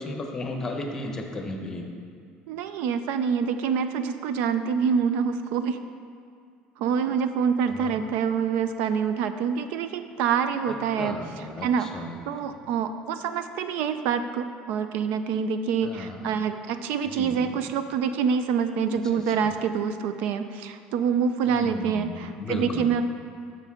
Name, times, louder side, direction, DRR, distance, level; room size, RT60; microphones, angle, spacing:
voice 1, 0.0-1.9 7.7-8.0 10.7-12.2 12.4-12.6 15.8-16.3 17.0-17.6 19.1-19.5 21.5-22.9, left 2 dB, 15° left, 3 dB, 0.8 m, -35 dB
voice 2, 2.5-5.8 6.8-23.0, right 6 dB, 65° right, 10 dB, 0.4 m, -26 dB
12.0 x 6.4 x 3.7 m, 2.2 s
cardioid pair, 165°, 3 cm